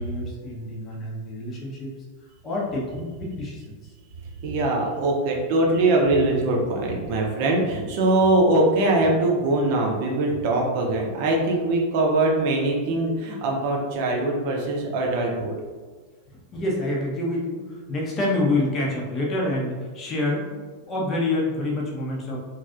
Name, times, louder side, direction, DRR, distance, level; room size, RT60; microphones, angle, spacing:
voice 1, 0.0-1.9 2.4-3.9 16.5-22.4, left 2 dB, 25° left, -3 dB, 0.7 m, -27 dB
voice 2, 4.4-15.6, right 2 dB, 45° right, -1 dB, 0.6 m, -22 dB
3.1 x 2.5 x 2.5 m, 1.4 s
figure-of-eight pair, 90°, 0 cm